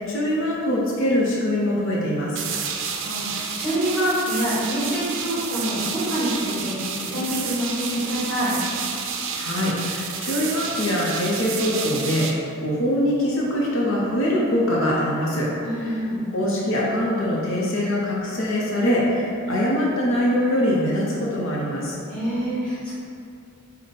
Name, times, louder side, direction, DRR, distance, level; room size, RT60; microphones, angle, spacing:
voice 1, 0.0-2.4 9.4-22.0, left 1 dB, 65° left, -5 dB, 0.7 m, -23 dB
sound 1, 2.4-12.3, right 6 dB, 60° right, 0.4 m, -30 dB
voice 2, 2.5-8.5 15.6-16.2 22.1-22.9, equal, 5° left, -11 dB, 1.4 m, -26 dB
5.0 x 2.1 x 4.0 m, 2.6 s
head